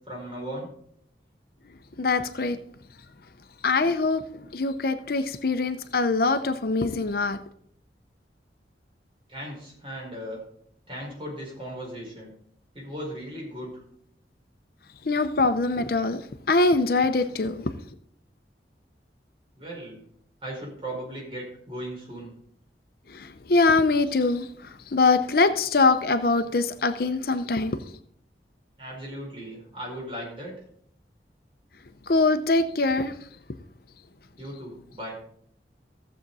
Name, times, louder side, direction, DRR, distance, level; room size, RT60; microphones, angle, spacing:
voice 1, 0.1-0.7 9.3-10.4 10.9-12.3 12.7-13.8 19.6-20.0 20.4-22.3 28.8-30.5 34.4-35.2, right 1 dB, 30° right, -2 dB, 5.0 m, -37 dB
voice 2, 2.0-2.6 3.6-7.4 15.0-17.7 23.1-27.9 32.1-33.2, left 3 dB, 55° left, 10 dB, 0.6 m, -23 dB
15.0 x 7.3 x 4.1 m, 0.66 s
head